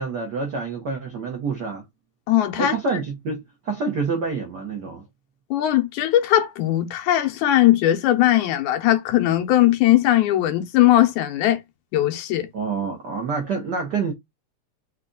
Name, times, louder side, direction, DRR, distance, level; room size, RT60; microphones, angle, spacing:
voice 1, 0.0-1.8 2.6-5.0 12.5-14.1, right 4 dB, 90° right, 0.9 m, -27 dB
voice 2, 2.3-2.8 5.5-11.6 11.9-12.5, left 13 dB, 90° left, 2.2 m, -19 dB
5.1 x 2.3 x 3.8 m
omnidirectional pair, 3.3 m